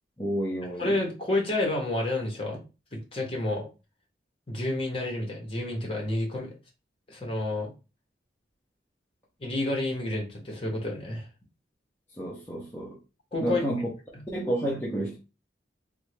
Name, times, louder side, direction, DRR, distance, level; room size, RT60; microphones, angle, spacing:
voice 1, 0.2-1.0 12.2-13.0 13.4-13.9 14.3-15.2, right 1 dB, 15° left, 0.6 m, -30 dB
voice 2, 0.8-2.6 2.9-3.7 4.5-6.5 7.1-7.7 9.4-11.3 13.3-13.6 14.1-14.2, left 2 dB, 30° left, 0.9 m, -29 dB
3.4 x 2.1 x 3.1 m
head